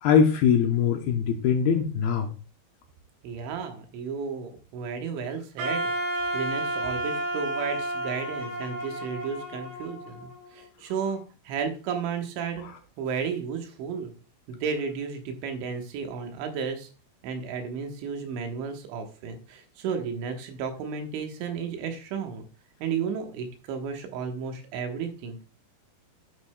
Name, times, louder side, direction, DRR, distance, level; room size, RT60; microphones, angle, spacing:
voice 1, 0.0-2.3 12.6-12.7, left 7 dB, 75° left, 4 dB, 2.4 m, -22 dB
voice 2, 3.2-5.8 6.3-12.7 13.0-14.1 14.5-16.9 17.2-22.5 22.8-25.5, right 6 dB, 85° right, 5 dB, 3.6 m, -33 dB
Wind instrument woodwind instrument, 5.6-10.6, right 1 dB, 70° right, 4.3 m, -31 dB
9.5 x 9.3 x 2.2 m, 0.35 s
omnidirectional pair, 5.1 m